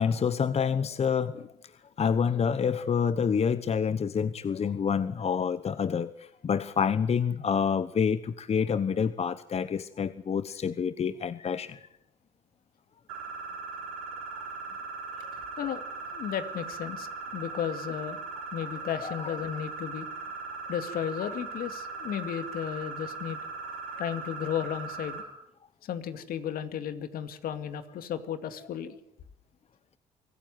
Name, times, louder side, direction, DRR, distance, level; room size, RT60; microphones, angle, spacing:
voice 1, 0.0-1.5 2.0-11.9 19.0-19.3, left 6 dB, 40° left, 15 dB, 1.0 m, -28 dB
sound 1, 13.1-25.2, right 4 dB, 90° right, 5.6 m, -39 dB
voice 2, 16.1-18.2 18.5-20.1 20.7-23.4 24.0-25.3 25.8-29.0, left 9 dB, 65° left, 10 dB, 2.3 m, -34 dB
24.5 x 14.5 x 9.4 m, 0.79 s
hypercardioid pair, 55°, 16 cm